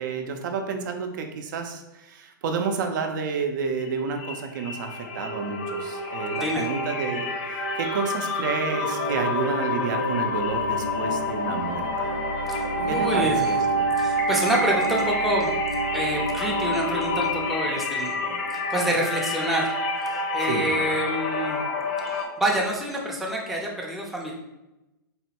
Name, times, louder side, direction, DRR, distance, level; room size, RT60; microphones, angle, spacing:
voice 1, 0.0-12.1 12.9-13.9 20.4-20.7, right 5 dB, 60° right, 5 dB, 0.5 m, -30 dB
sound 1, 3.6-3.9 4.1-22.3, left 1 dB, 50° left, 0.6 m, -28 dB
sound 2, 4.7-19.2, right 2 dB, 80° left, 1.1 m, -34 dB
voice 2, 12.5-13.5 14.0-15.5 15.9-18.1 18.7-19.7 20.3-21.6 22.4-24.3, right 1 dB, ahead, -2 dB, 0.4 m, -27 dB
4.0 x 2.2 x 2.8 m, 0.97 s
hypercardioid pair, 140°, 11 cm